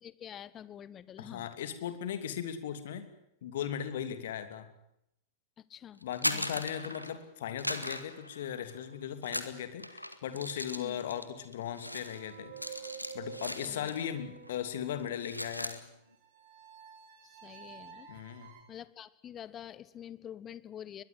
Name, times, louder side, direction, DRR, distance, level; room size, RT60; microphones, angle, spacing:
voice 1, 0.0-1.5 5.6-6.5 10.8-11.0 13.6-13.9 17.2-18.1 18.7-21.0, left 10 dB, 25° left, 18 dB, 1.3 m, -47 dB
voice 2, 1.2-3.1 3.4-4.7 6.0-12.5 13.1-15.8 18.1-18.6, left 9 dB, 60° left, 10 dB, 3.0 m, -38 dB
sound 1, 6.0-7.2 7.6-8.8 9.2-14.2 14.4-14.7 15.0-15.8, equal, 90° left, 2.0 m, -38 dB
sound 2, 11.8-15.1 16.2-18.6, right 7 dB, 50° right, 6.0 m, -49 dB
22.0 x 22.0 x 9.5 m, 0.78 s
figure-of-eight pair, 90°, 0 cm